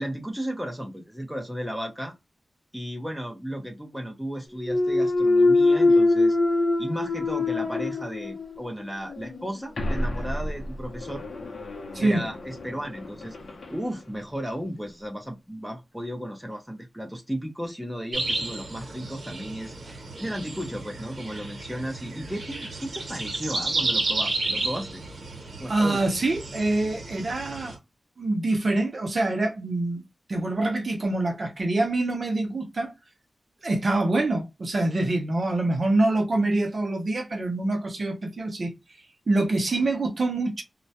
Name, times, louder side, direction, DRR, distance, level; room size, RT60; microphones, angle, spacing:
voice 1, 0.0-2.1 2.7-6.4 6.8-11.3 12.0-13.3 13.7-25.0 25.6-26.1, equal, ahead, 0.6 m, -34 dB
Thump thud, 4.6-8.6 9.1-13.8, left 2 dB, 70° left, 0.6 m, -24 dB
sound 1, 18.1-27.8, right 2 dB, 75° right, 0.9 m, -32 dB
voice 2, 25.7-27.8 28.2-30.0 30.3-32.9 33.6-38.7 39.3-40.6, right 2 dB, 45° right, 0.6 m, -25 dB
2.2 x 2.1 x 2.7 m
wide cardioid pair, 135°, 0 cm